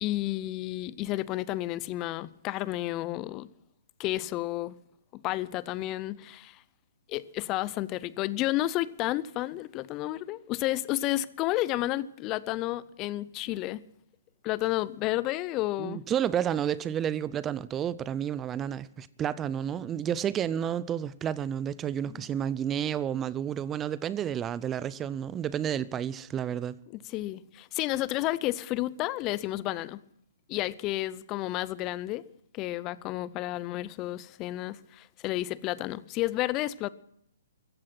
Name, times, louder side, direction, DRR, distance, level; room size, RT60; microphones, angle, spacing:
voice 1, 0.0-3.5 4.0-4.7 5.1-6.6 7.1-13.8 14.4-16.0 26.9-30.0 30.5-32.2 32.5-36.9, left 16 dB, 30° left, 0.6 m, -31 dB
voice 2, 15.8-26.8, right 9 dB, 20° right, 0.5 m, -31 dB
15.0 x 15.0 x 5.9 m
hypercardioid pair, 135°, 0 cm